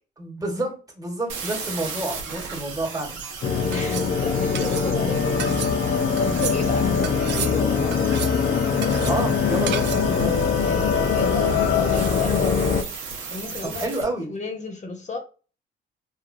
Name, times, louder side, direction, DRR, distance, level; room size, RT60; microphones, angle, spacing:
voice 1, 0.2-3.2 9.1-10.4 13.6-14.3, right 1 dB, 15° right, 1.3 m, -29 dB
sound 1, 1.3-14.0, right 5 dB, 85° right, 0.9 m, -36 dB
sound 2, 3.2-3.3 3.7-4.1 4.5-4.9 5.4-5.7 6.2-6.6 7.0-7.5 7.9-8.4 8.8-9.2 9.7-10.1, right 10 dB, 65° right, 0.4 m, -33 dB
sound 3, 3.4-12.8, left 6 dB, 60° left, 0.6 m, -22 dB
voice 2, 3.7-7.9 10.6-12.6 13.3-13.9 14.3-15.2, left 3 dB, 35° left, 0.8 m, -33 dB
3.0 x 2.4 x 2.5 m
cardioid pair, 90°, 20 cm